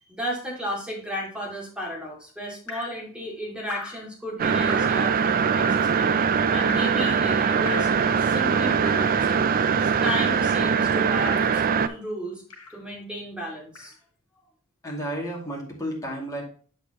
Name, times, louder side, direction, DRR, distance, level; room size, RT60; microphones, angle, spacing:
voice 1, 0.0-6.1 6.5-7.9 8.2-9.4 9.8-12.4 12.7-13.9, equal, 5° right, -3 dB, 2.3 m, -34 dB
Drip, 2.7-3.0 3.7-4.0 4.7-5.0 5.6-6.0 6.7-7.0 7.6-8.0 8.9-9.2 10.1-10.4 11.2-11.6 12.5-12.8 13.7-13.9, left 4 dB, 80° left, 1.1 m, -38 dB
sound 1, 4.4-11.9, right 6 dB, 40° right, 0.4 m, -22 dB
voice 2, 14.8-16.4, equal, 15° left, -3 dB, 2.3 m, -32 dB
8.0 x 6.4 x 2.9 m, 0.43 s
head